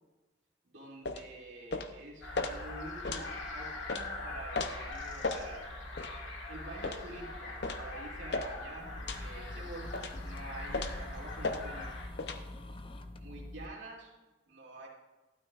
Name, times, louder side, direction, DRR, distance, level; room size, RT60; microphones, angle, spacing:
voice 1, 0.6-5.7 6.5-12.0 13.2-14.1 14.5-14.9, right 2 dB, 80° right, -3 dB, 2.6 m, -48 dB
sound 1, 1.1-1.3 1.7-1.9 2.4-2.5 3.0-3.3 3.9-4.0 4.5-4.7 5.2-5.4 6.0-6.1 6.8-7.0 7.6-7.8 8.3-8.5 9.1-9.3 9.9-10.2 10.7-11.0 11.4-11.6 12.2-12.4, left 3 dB, 60° left, 0.7 m, -35 dB
sound 2, 2.2-12.1, left 2 dB, 80° left, 1.8 m, -43 dB
sound 3, 8.8-13.7, left 1 dB, 30° left, 0.5 m, -44 dB
12.5 x 12.0 x 2.5 m, 1.1 s
head